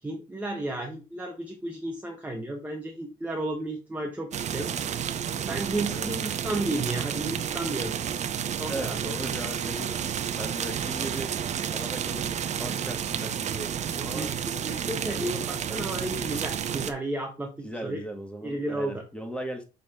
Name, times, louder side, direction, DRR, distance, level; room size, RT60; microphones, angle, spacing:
voice 1, 0.0-4.7 5.4-7.9 8.5-9.0 14.1-18.0 18.4-19.0, right 1 dB, 10° right, 1.1 m, -33 dB
sound 1, 4.3-16.9, right 8 dB, 45° right, 0.7 m, -31 dB
voice 2, 8.7-11.4 11.7-14.3 14.7-15.3 17.6-19.6, right 1 dB, 5° left, 1.6 m, -38 dB
6.4 x 4.1 x 3.7 m
cardioid pair, 110°, 17 cm